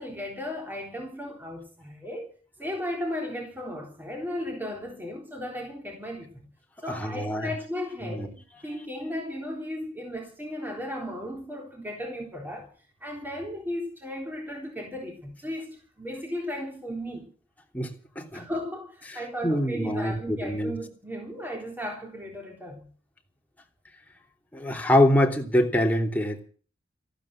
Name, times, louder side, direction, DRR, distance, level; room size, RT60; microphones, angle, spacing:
voice 1, 0.0-2.3 2.6-6.5 6.8-8.3 8.6-12.7 13.0-17.3 18.3-22.9, equal, 10° right, 3.7 m, -35 dB
voice 2, 6.9-7.5 8.0-8.3 17.7-18.5 19.1-20.7 24.5-26.5, left 1 dB, 10° left, 3.0 m, -25 dB
14.5 x 13.0 x 7.4 m
head